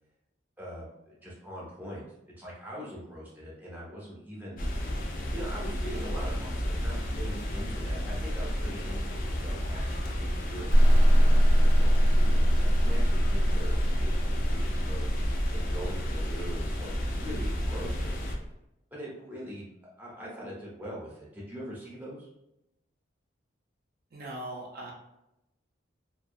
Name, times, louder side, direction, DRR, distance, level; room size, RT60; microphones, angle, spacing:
voice 1, 0.6-4.7 5.3-15.1 15.5-18.2 18.9-19.7 20.0-22.3, equal, 10° right, -5 dB, 0.7 m, -42 dB
sound 1, 4.6-18.3, equal, 45° left, 0.4 m, -32 dB
sound 2, 10.7-18.3, equal, 90° left, 0.8 m, -24 dB
voice 2, 24.1-24.9, right 1 dB, 50° right, -2 dB, 0.4 m, -39 dB
2.4 x 2.2 x 2.5 m, 0.87 s
head